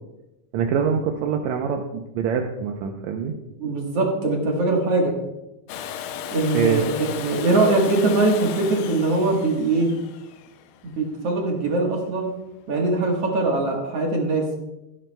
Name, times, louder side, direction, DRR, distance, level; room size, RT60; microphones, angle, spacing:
voice 1, 0.5-3.3 6.5-6.8, right 7 dB, 80° right, 3 dB, 1.7 m, -24 dB
voice 2, 3.6-5.2 6.3-9.9 11.0-12.3 12.7-14.6, right 2 dB, 55° right, 0 dB, 2.1 m, -22 dB
Domestic sounds home sounds, 5.7-11.5 13.4-13.5, left 9 dB, 85° left, 2.2 m, -35 dB
17.0 x 9.1 x 2.2 m, 0.96 s
omnidirectional pair, 3.8 m